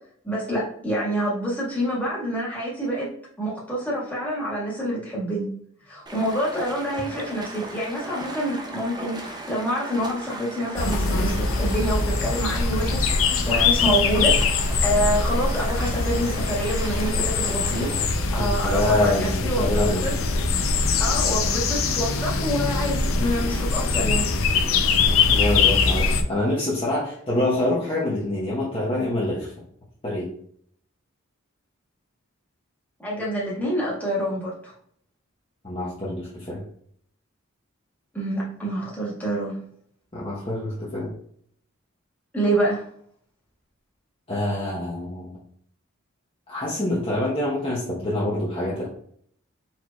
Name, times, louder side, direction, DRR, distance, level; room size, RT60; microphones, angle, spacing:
voice 1, 0.2-3.1 3.4-5.5 5.8-13.1 13.5-14.3 14.8-17.9 18.3-20.2 21.0-24.3 33.0-34.7 38.1-39.6 42.3-42.8, equal, 10° left, -7 dB, 1.7 m, -27 dB
Stream, 6.1-18.1, right 2 dB, 20° right, 0.5 m, -38 dB
sound 1, 10.8-26.2, left 4 dB, 80° left, 0.6 m, -23 dB
voice 2, 18.4-20.1 25.1-29.5 30.0-30.3 35.6-36.6 40.1-41.1 44.3-45.4 46.5-48.9, left 1 dB, 25° left, -7 dB, 1.0 m, -26 dB
4.7 x 4.4 x 2.3 m, 0.63 s
head